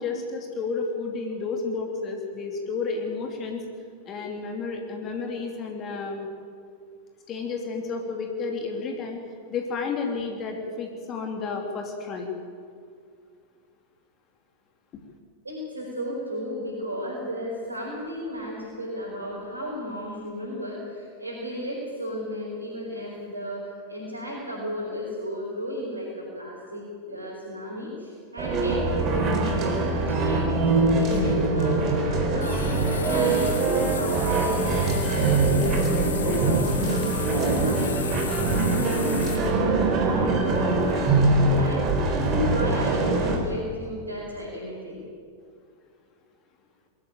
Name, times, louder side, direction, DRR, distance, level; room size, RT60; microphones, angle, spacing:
voice 1, 0.0-3.6 4.0-6.3 7.3-9.2 9.5-12.3, left 4 dB, 30° left, 2 dB, 2.9 m, -31 dB
voice 2, 15.4-32.7 33.0-38.0 38.6-41.2 41.5-45.0, equal, 80° right, -5 dB, 4.9 m, -34 dB
sound 1, 28.4-43.4, right 3 dB, 35° right, 3.8 m, -23 dB
sound 2, 29.9-30.0 31.1-31.5 32.4-39.4, left 6 dB, 65° left, 2.6 m, -36 dB
22.0 x 14.5 x 9.1 m, 2.2 s
figure-of-eight pair, 90°, 0 cm